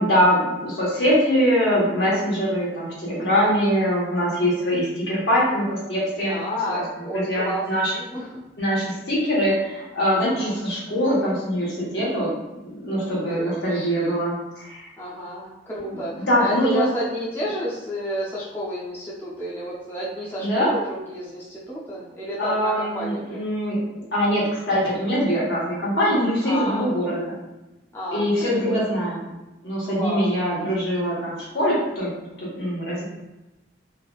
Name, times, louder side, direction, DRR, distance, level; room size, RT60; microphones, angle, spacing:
voice 1, 0.0-6.4 6.7-6.8 7.1-7.9 8.6-12.3 12.6-14.9 15.9-16.8 20.4-20.7 22.4-23.8 24.1-27.4 28.1-29.3 29.6-32.1 32.4-33.0, equal, 70° left, -6 dB, 1.1 m, -23 dB
voice 2, 4.4-4.8 6.3-8.4 10.2-10.6 12.9-14.2 15.0-23.4 26.4-26.9 27.9-28.9 29.8-30.2 30.5-30.7, equal, 10° left, -7 dB, 0.4 m, -31 dB
3.2 x 2.3 x 2.3 m, 0.99 s
head